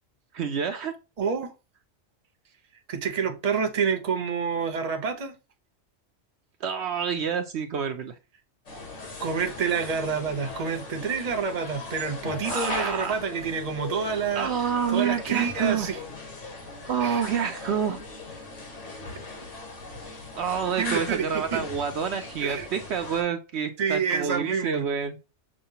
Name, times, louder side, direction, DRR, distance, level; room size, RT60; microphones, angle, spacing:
voice 1, 0.3-0.9 6.6-8.1 12.5-13.2 14.3-15.9 16.9-18.0 20.4-25.2, right 7 dB, 65° right, 0.8 m, -28 dB
voice 2, 1.2-1.5 2.9-5.3 9.2-14.5 14.9-16.0 17.0-17.2 20.8-21.6 22.4-22.7 23.8-24.9, right 6 dB, 35° right, 0.8 m, -28 dB
sound 1, 8.7-23.2, left 3 dB, 85° left, 1.8 m, -39 dB
6.3 x 2.3 x 2.7 m
omnidirectional pair, 1.2 m